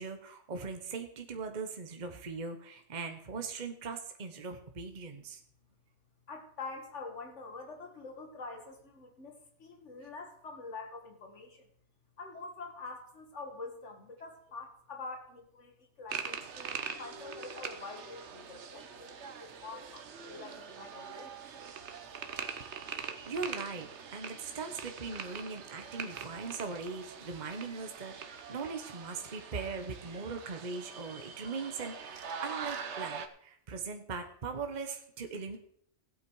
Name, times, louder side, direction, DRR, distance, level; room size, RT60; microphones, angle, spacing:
voice 1, 0.0-5.4 23.3-35.6, right 4 dB, 40° right, 5 dB, 1.1 m, -40 dB
voice 2, 6.3-11.7 12.2-21.4, left 3 dB, 65° left, 3 dB, 2.1 m, -46 dB
sound 1, 16.1-33.3, right 6 dB, 65° right, 1.2 m, -43 dB
16.0 x 8.7 x 4.7 m, 0.65 s
omnidirectional pair, 1.3 m